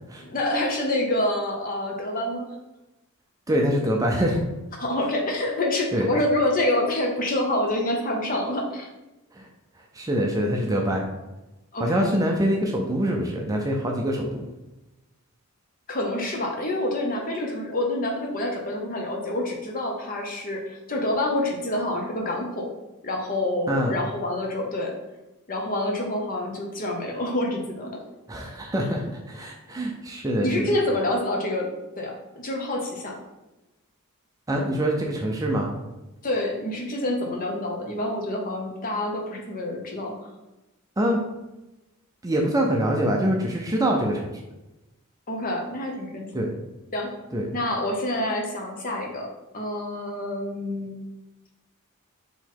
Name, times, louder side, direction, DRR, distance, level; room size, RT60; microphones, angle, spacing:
voice 1, 0.2-2.5 4.8-8.9 11.7-12.1 15.9-22.7 23.0-25.0 25.5-28.0 30.4-31.7 32.0-32.2 32.4-33.2 36.2-40.1 45.3-46.5 46.9-47.1 47.5-49.3 49.5-51.0, left 1 dB, 40° left, 0 dB, 0.8 m, -27 dB
voice 2, 3.5-4.4 5.9-6.1 9.4-9.5 9.9-11.0 11.8-14.5 23.7-23.9 28.3-30.7 34.5-35.7 41.0-41.2 42.2-44.3 46.3-46.5 47.3-47.5, equal, 15° right, 0 dB, 0.4 m, -24 dB
3.9 x 3.0 x 4.5 m, 1.0 s
head